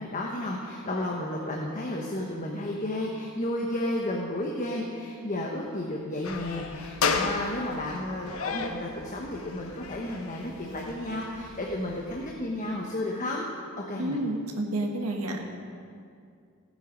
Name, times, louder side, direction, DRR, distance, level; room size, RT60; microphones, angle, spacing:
voice 1, 0.0-13.5 13.8-14.2, left 1 dB, 35° left, -1 dB, 1.2 m, -32 dB
sound 1, 6.2-12.3, left 5 dB, 70° left, 1.0 m, -34 dB
voice 2, 14.0-15.4, right 1 dB, 85° right, 1 dB, 1.6 m, -30 dB
16.0 x 9.4 x 5.2 m, 2.3 s
head